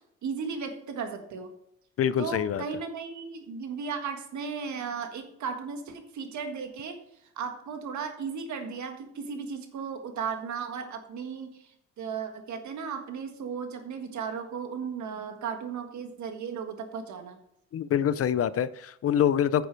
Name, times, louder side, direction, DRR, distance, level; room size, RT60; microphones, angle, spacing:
voice 1, 0.2-1.5 2.2-17.4, right 6 dB, 70° right, 1.7 m, -36 dB
voice 2, 2.0-2.6 17.7-19.7, left 9 dB, 50° left, 0.5 m, -25 dB
10.0 x 7.0 x 4.6 m
cardioid pair, 90°, 30 cm